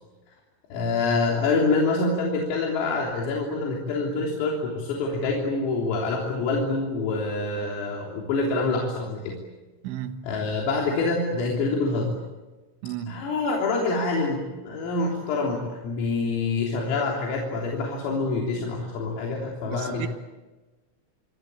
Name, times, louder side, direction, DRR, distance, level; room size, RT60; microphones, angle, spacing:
voice 1, 0.7-9.4 10.2-12.1 13.1-20.1, left 3 dB, 85° left, 6.1 m, -26 dB
voice 2, 9.8-10.2 12.8-13.2 19.6-20.1, right 11 dB, 75° right, 3.3 m, -33 dB
27.0 x 25.0 x 8.6 m
omnidirectional pair, 5.8 m